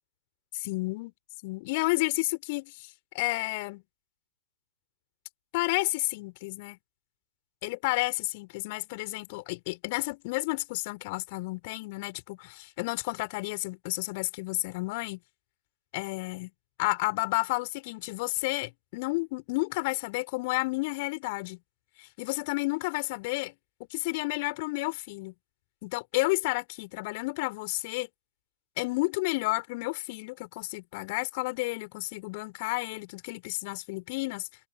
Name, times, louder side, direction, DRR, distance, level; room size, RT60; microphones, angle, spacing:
voice 1, 0.5-1.1 1.4-3.8 5.5-6.8 7.6-15.2 15.9-16.5 16.8-21.6 22.0-23.5 23.9-25.3 25.8-28.1 28.8-34.5, left 25 dB, 40° left, 4.3 m, -31 dB
figure-of-eight pair, 110°, 0 cm